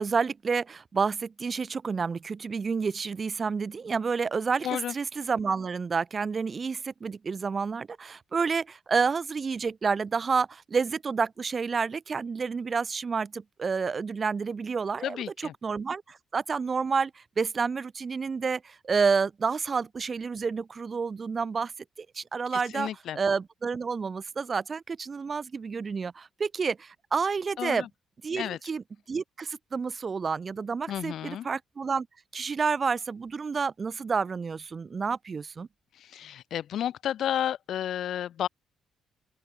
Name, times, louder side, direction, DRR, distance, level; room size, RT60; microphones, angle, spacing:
voice 1, 0.0-21.7 22.0-22.9 23.2-27.9 28.2-32.1 32.3-35.7, right 5 dB, 35° right, 1.0 m, -29 dB
voice 2, 4.6-4.9 15.0-15.5 22.5-23.2 27.6-27.9 28.4-28.6 30.9-31.5 36.0-38.5, left 10 dB, 70° left, 1.2 m, -32 dB
open air
cardioid pair, 90°, 0 cm